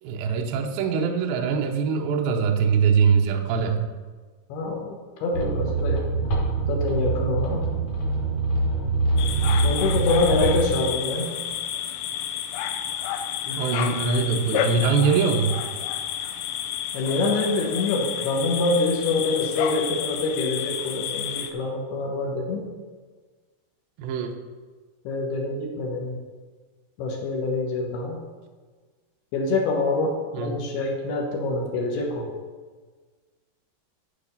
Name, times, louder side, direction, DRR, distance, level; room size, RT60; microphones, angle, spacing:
voice 1, 0.0-3.8 13.6-15.6 24.0-24.3 30.3-30.6, right 5 dB, 85° right, 3 dB, 2.2 m, -22 dB
voice 2, 4.5-6.0 6.7-7.7 9.6-11.3 13.5-13.6 16.9-22.6 25.0-26.2 27.0-28.2 29.3-32.3, left 3 dB, 70° left, 0 dB, 2.9 m, -26 dB
sound 1, 5.3-10.7, right 3 dB, 50° left, 3.0 m, -24 dB
sound 2, 9.2-21.5, left 9 dB, 85° left, 2.9 m, -30 dB
12.0 x 4.9 x 5.4 m, 1.4 s
omnidirectional pair, 5.2 m